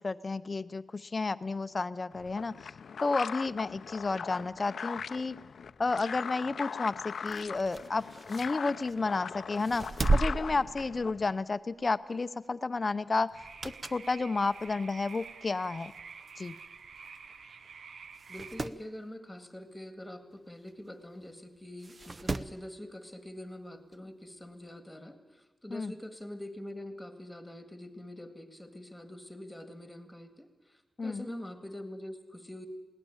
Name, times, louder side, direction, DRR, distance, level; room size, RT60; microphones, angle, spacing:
voice 1, 0.0-2.7 3.0-5.4 5.8-9.8 10.1-13.3 13.6-15.9 16.4-16.5 25.7-25.9 31.0-31.3, left 3 dB, 30° left, 14 dB, 0.7 m, -31 dB
sound 1, 2.1-11.4, left 6 dB, 70° left, 0.6 m, -40 dB
sound 2, 7.1-9.1 9.6-11.4 11.8-12.0 13.3-14.1 14.6-14.7 15.6-15.7 15.9-16.0 16.2-16.3 17.2-17.3 17.7-17.8 18.1-18.8 20.7-20.8 21.8-22.6 23.9-24.0, right 3 dB, 35° right, 0.6 m, -34 dB
sound 3, 13.3-18.7, right 5 dB, 70° right, 0.9 m, -49 dB
voice 2, 18.3-32.7, left 1 dB, 5° left, 8 dB, 1.9 m, -45 dB
21.0 x 17.0 x 8.9 m, 1.1 s
wide cardioid pair, 135°, 0 cm